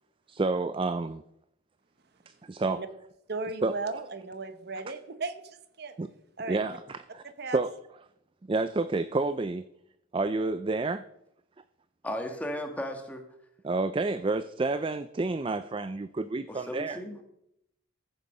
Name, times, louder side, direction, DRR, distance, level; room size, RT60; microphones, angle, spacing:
voice 1, 0.3-1.2 2.3-2.8 3.6-3.7 6.0-6.1 6.5-7.2 7.5-7.7 8.5-9.6 10.1-11.0 13.6-17.0, right 3 dB, 25° right, 13 dB, 0.4 m, -29 dB
voice 2, 3.3-5.9 6.4-6.6 7.4-7.6, right 3 dB, 50° right, 11 dB, 0.9 m, -36 dB
voice 3, 12.0-13.2 16.5-17.2, equal, 5° left, 4 dB, 1.5 m, -35 dB
14.5 x 6.8 x 5.5 m, 0.78 s
head